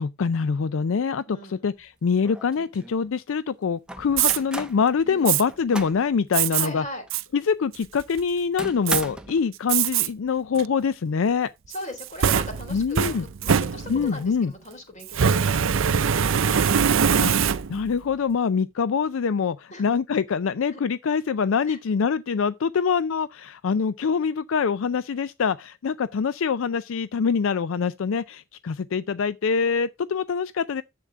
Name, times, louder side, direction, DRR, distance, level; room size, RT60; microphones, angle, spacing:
voice 1, 0.0-6.8 7.3-11.5 12.7-13.2 13.9-14.5 17.2-17.4 17.7-30.8, left 6 dB, 70° left, 0.4 m, -24 dB
voice 2, 1.3-1.6 5.0-5.3 6.5-7.0 11.7-13.1 13.4-16.7 19.7-19.9 20.7-20.8 21.7-21.8, left 1 dB, 35° left, 3.8 m, -39 dB
sound 1, 1.8-1.9 2.2-3.0 3.9-4.8 5.3-6.1 6.5-6.6 7.1-7.2 8.6-9.4, right 1 dB, 5° right, 0.8 m, -36 dB
Fire, 4.1-4.4 5.3-5.4 6.3-6.7 7.1-7.2 7.7-8.2 8.9-9.0 9.7-10.1 10.6-10.7 11.7-14.2 15.1-17.9, right 7 dB, 65° right, 0.5 m, -22 dB
10.0 x 7.7 x 3.5 m
head